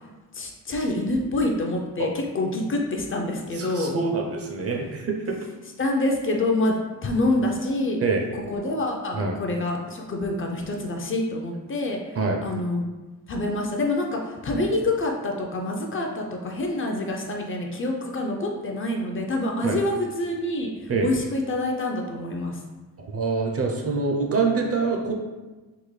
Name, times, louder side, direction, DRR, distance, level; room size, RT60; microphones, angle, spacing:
voice 1, 0.3-3.9 5.8-8.0 8.5-12.0 12.4-12.8 13.3-22.6, left 2 dB, 40° left, 1 dB, 0.4 m, -26 dB
voice 2, 3.6-5.4 8.0-8.2 9.1-9.4 12.2-12.4 19.6-19.8 20.9-21.1 23.1-25.1, right 4 dB, 45° right, 2 dB, 0.5 m, -25 dB
3.6 x 2.1 x 3.1 m, 1.2 s
cardioid pair, 110°, 34 cm